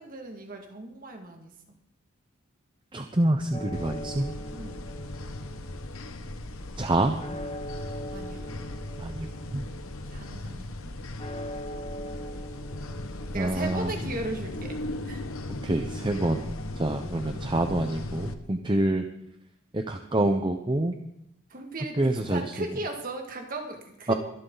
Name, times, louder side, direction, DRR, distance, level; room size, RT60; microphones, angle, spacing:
voice 1, 0.0-1.5 4.5-4.8 8.1-8.5 10.1-10.9 13.3-14.8 15.0-15.3 21.5-24.1, right 2 dB, 40° right, 3 dB, 2.1 m, -37 dB
voice 2, 2.9-4.3 6.8-7.2 9.0-9.6 13.3-13.9 15.6-16.5 16.7-19.0 19.7-21.0 22.0-22.5 24.1-24.2, right 1 dB, 20° right, 6 dB, 0.7 m, -26 dB
sound 1, 3.5-14.1, equal, 25° left, 1.4 m, -42 dB
sound 2, 3.7-18.3, left 1 dB, 75° left, 1.2 m, -38 dB
23.0 x 12.0 x 4.0 m, 0.79 s
head